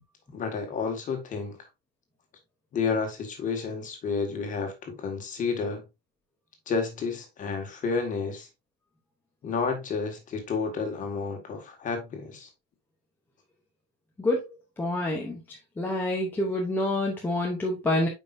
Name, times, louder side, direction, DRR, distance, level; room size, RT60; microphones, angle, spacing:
voice 1, 0.3-1.6 2.7-5.8 6.7-8.5 9.4-12.5, left 5 dB, 20° left, 1.7 m, -30 dB
voice 2, 14.8-18.1, left 1 dB, 5° left, 0.7 m, -27 dB
8.6 x 5.4 x 2.6 m
cardioid pair, 180°, 35 cm